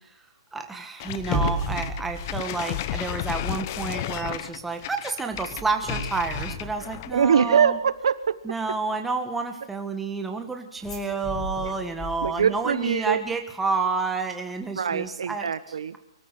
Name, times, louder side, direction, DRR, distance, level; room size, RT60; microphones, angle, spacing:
voice 1, 0.5-7.8 8.4-15.5, right 4 dB, 5° right, 4 dB, 1.6 m, -30 dB
sound 1, 1.0-7.3, left 14 dB, 30° left, 0.8 m, -33 dB
sound 2, 1.2-3.4 3.7-4.0 5.3-7.5 10.8-12.7 13.0-13.1, right 1 dB, 15° left, 4.5 m, -34 dB
voice 2, 7.1-8.3 11.6-11.7 12.2-13.2 14.7-16.0, right 7 dB, 75° right, 14 dB, 1.3 m, -23 dB
24.0 x 14.0 x 8.4 m, 0.82 s
hypercardioid pair, 165°, 3 cm